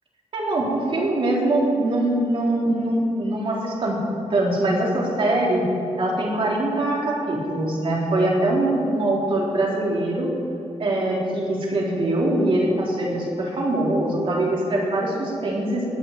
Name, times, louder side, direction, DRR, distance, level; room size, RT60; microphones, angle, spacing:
voice 1, 0.3-4.0 4.3-5.6 6.0-10.3 10.8-15.8, right 1 dB, 50° right, -3 dB, 3.6 m, -23 dB
20.0 x 7.2 x 8.1 m, 2.8 s
wide cardioid pair, 145°, 12 cm